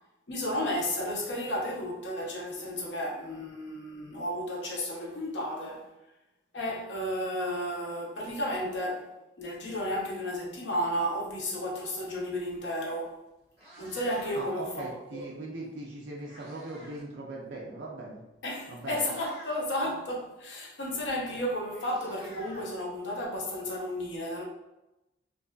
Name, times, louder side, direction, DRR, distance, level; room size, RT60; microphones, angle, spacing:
voice 1, 0.3-5.9 6.5-9.1 9.4-13.2 13.8-14.7 15.1-15.3 18.4-24.4, equal, 75° left, 0.7 m, -33 dB
Meow, 13.1-13.2 13.4-14.7 15.8-17.1 17.4-17.6 18.3-18.4 18.8-19.7 21.0-21.1 21.4-23.3, equal, 35° right, 1.0 m, -50 dB
voice 2, 14.3-18.2 18.7-19.0, right 2 dB, 70° right, 0.5 m, -40 dB
2.5 x 2.3 x 2.2 m
head